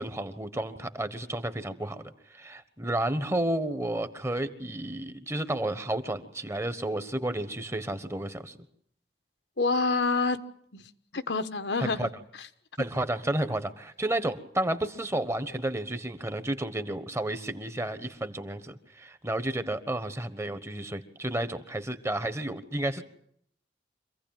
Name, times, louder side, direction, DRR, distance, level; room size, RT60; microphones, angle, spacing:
voice 1, 0.0-8.6 11.8-12.1 12.8-23.0, right 1 dB, 15° right, 12 dB, 1.2 m, -31 dB
voice 2, 9.6-10.4 10.7-12.1 12.4-12.5, left 3 dB, 80° left, 10 dB, 1.3 m, -28 dB
25.5 x 16.0 x 9.0 m, 0.69 s
head